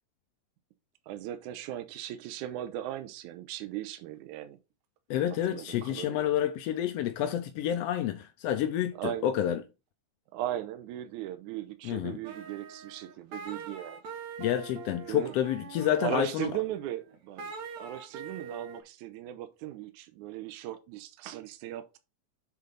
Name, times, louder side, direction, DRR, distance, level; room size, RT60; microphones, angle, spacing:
voice 1, 1.1-4.6 5.4-6.3 9.0-9.3 10.3-14.0 15.0-15.3 16.0-22.0, right 13 dB, 85° right, 2.2 m, -38 dB
voice 2, 5.1-9.6 11.8-12.2 14.4-16.5, left 11 dB, 80° left, 1.4 m, -29 dB
sound 1, 12.2-18.8, right 5 dB, 65° right, 2.8 m, -44 dB
7.9 x 3.9 x 5.2 m
omnidirectional pair, 3.4 m